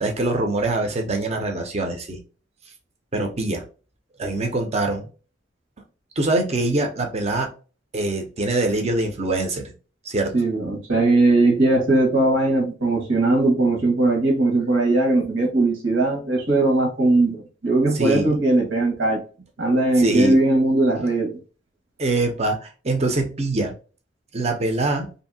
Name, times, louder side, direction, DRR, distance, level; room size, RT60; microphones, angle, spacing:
voice 1, 0.0-2.2 3.1-3.6 4.2-5.1 6.2-7.5 7.9-9.7 10.0-10.3 17.9-18.4 20.0-20.4 22.0-23.7 24.3-25.1, right 2 dB, 35° right, 0.6 m, -24 dB
voice 2, 10.3-19.2 19.6-21.3, right 2 dB, 80° right, 1.3 m, -19 dB
2.7 x 2.7 x 2.7 m
head